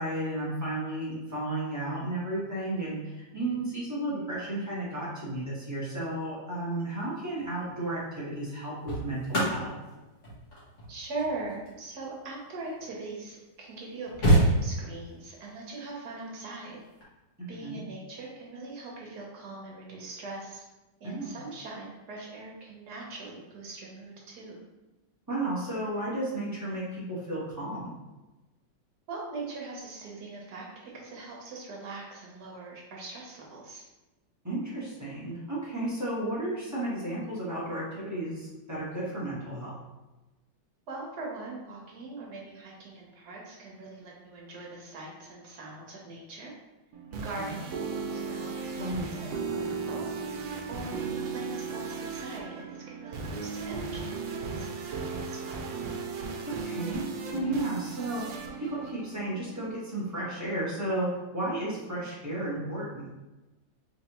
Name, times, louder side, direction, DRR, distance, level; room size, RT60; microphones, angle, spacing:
voice 1, 0.0-9.7 17.4-17.8 21.0-21.4 25.3-28.0 34.4-39.7 47.1-47.6 48.8-49.2 56.5-57.0 57.3-63.1, right 1 dB, 10° right, -9 dB, 0.9 m, -33 dB
sound 1, 7.2-7.5 8.4-13.0 13.6-13.7 13.8-15.1 16.8-17.0, right 1 dB, 45° left, 1.4 m, -28 dB
voice 2, 10.9-16.8 17.5-20.6 21.0-24.6 29.1-33.8 40.9-46.5 47.2-55.6, right 3 dB, 65° right, -3 dB, 1.3 m, -41 dB
sound 2, 46.9-59.7, right 5 dB, 85° right, 1.3 m, -36 dB
3.7 x 3.3 x 2.9 m, 1.1 s
omnidirectional pair, 2.0 m